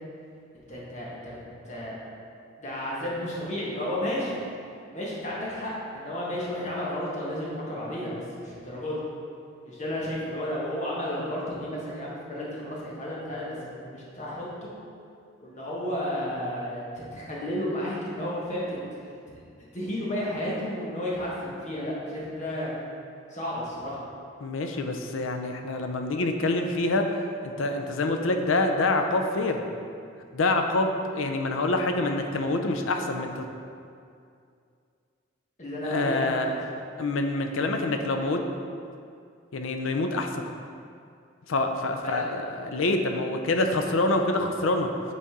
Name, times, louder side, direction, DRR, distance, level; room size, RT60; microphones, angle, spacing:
voice 1, 0.7-1.4 1.6-2.0 2.6-4.4 4.9-9.0 9.6-14.7 15.4-18.8 19.7-22.7 23.3-24.0 35.6-36.6 42.0-42.2, left 1 dB, 35° left, -5 dB, 1.4 m, -32 dB
voice 2, 24.4-27.1 27.4-29.6 30.3-33.4 35.8-36.5 37.0-38.4 39.5-40.4 41.5-44.9, left 2 dB, 75° left, 5 dB, 0.5 m, -26 dB
8.3 x 4.1 x 3.7 m, 2.4 s
head